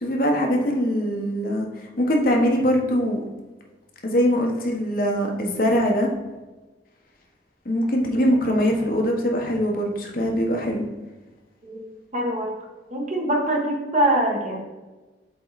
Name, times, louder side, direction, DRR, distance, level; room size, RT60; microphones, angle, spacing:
voice 1, 0.0-1.7 2.0-3.2 4.0-6.1 7.6-10.8, equal, 55° left, 1 dB, 1.3 m, -22 dB
voice 2, 12.1-12.5 12.9-14.6, right 1 dB, 40° right, -1 dB, 1.6 m, -23 dB
7.6 x 4.5 x 4.1 m, 1.2 s
head